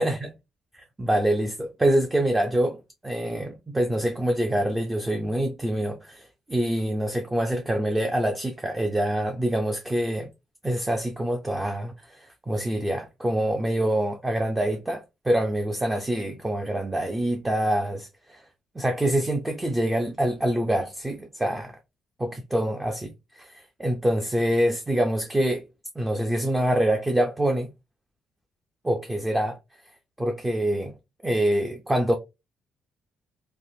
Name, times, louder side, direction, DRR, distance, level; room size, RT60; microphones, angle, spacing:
voice 1, 0.7-2.8 3.0-10.3 10.6-18.4 18.8-21.7 22.2-25.6 26.0-27.7 28.8-29.6 30.2-30.9 31.2-32.1, right 1 dB, 15° right, 0.5 m, -25 dB
3.3 x 2.1 x 2.7 m
cardioid pair, 110°, 0 cm